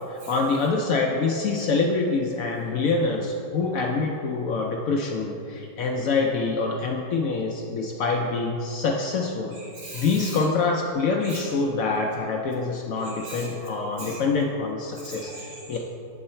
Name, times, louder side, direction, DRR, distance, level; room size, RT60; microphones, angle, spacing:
voice 1, 0.1-9.5 9.9-15.3 15.7-15.8, left 4 dB, 70° left, 0 dB, 0.8 m, -25 dB
voice 2, 9.5-10.5 11.2-11.5 13.0-13.5 14.0-14.2 15.0-15.8, right 2 dB, 70° right, -6 dB, 2.3 m, -41 dB
7.8 x 4.7 x 4.3 m, 2.7 s
omnidirectional pair, 1.9 m